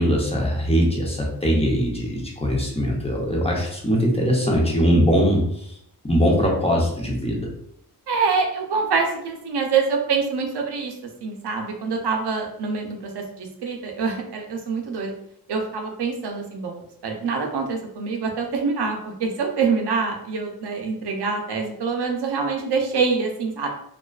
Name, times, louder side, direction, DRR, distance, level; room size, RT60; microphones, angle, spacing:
voice 1, 0.0-5.8 6.0-7.5, equal, 15° left, -2 dB, 0.6 m, -21 dB
voice 2, 8.1-10.9 11.2-15.1 15.5-23.7, right 5 dB, 90° right, 3 dB, 0.6 m, -25 dB
2.4 x 2.3 x 2.2 m, 0.71 s
wide cardioid pair, 85°, 39 cm